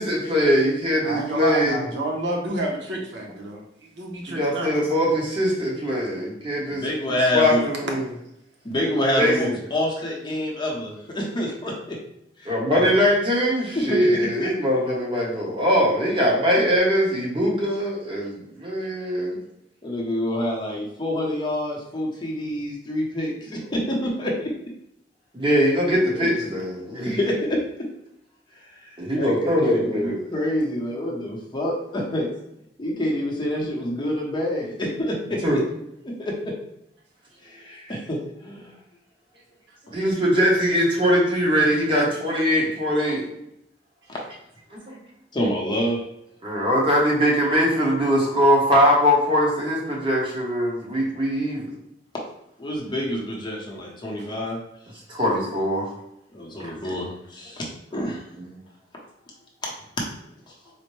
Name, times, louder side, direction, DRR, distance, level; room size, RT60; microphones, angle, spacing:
voice 1, 0.0-1.8 4.3-8.0 9.2-9.5 12.4-19.4 25.3-27.2 29.0-30.2 35.4-35.6 39.9-43.2 46.4-51.7 55.1-55.9 57.9-58.1, equal, 30° right, -4 dB, 1.0 m, -21 dB
voice 2, 1.0-4.7 54.2-54.3, right 2 dB, 80° right, 0 dB, 0.7 m, -29 dB
voice 3, 6.7-7.6 8.6-12.0 12.4-12.5 13.7-14.5 19.8-24.5 26.1-26.3 27.2-27.3 28.6-32.3 32.8-35.6 36.0-36.5 37.4-38.7 39.9-40.0 44.1-44.2 45.3-46.0 52.6-54.6 56.3-57.6 57.9-58.2, left 1 dB, 25° left, -3 dB, 0.7 m, -27 dB
4.2 x 2.1 x 3.1 m, 0.79 s
head